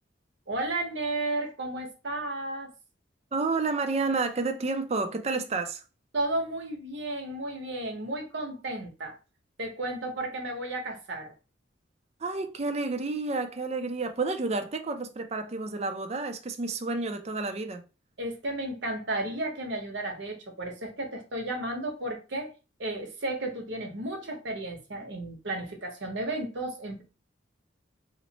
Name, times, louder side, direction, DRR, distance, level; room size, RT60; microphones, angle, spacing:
voice 1, 0.5-2.7 6.1-9.2 9.6-11.3 18.2-22.5 22.8-27.0, right 2 dB, 70° right, 1.0 m, -33 dB
voice 2, 3.3-5.8 12.2-17.8, right 3 dB, 35° right, 0.4 m, -30 dB
3.1 x 2.1 x 3.9 m
head